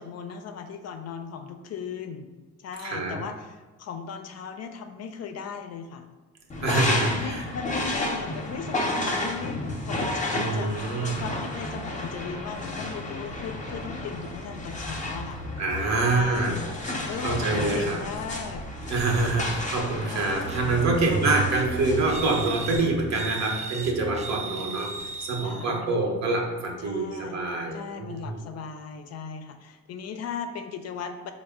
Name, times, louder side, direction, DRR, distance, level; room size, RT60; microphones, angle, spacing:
voice 1, 0.0-6.1 6.8-15.4 16.0-16.7 17.1-19.1 20.1-20.4 21.1-21.4 24.4-24.6 25.4-26.0 26.8-27.4 27.7-31.3, left 6 dB, 55° left, 7 dB, 0.4 m, -38 dB
voice 2, 2.8-3.2 6.6-7.4 10.3-11.2 15.6-16.9 17.2-18.0 18.9-28.4, right 3 dB, 60° right, 1 dB, 0.9 m, -26 dB
sound 1, 6.5-22.8, left 2 dB, 25° left, 0.7 m, -32 dB
sound 2, 20.4-25.8, right 5 dB, 25° right, 0.3 m, -34 dB
4.1 x 2.0 x 3.5 m, 1.3 s
cardioid pair, 90°, 30 cm